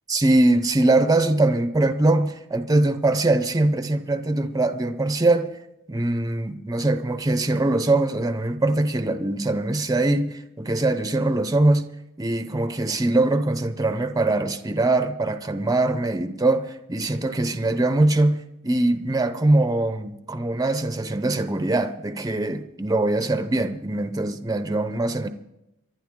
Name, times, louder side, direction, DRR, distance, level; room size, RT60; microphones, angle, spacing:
voice 1, 0.1-5.6 5.9-11.9 12.2-25.3, right 2 dB, 15° right, 0.7 m, -22 dB
25.0 x 11.5 x 3.7 m
head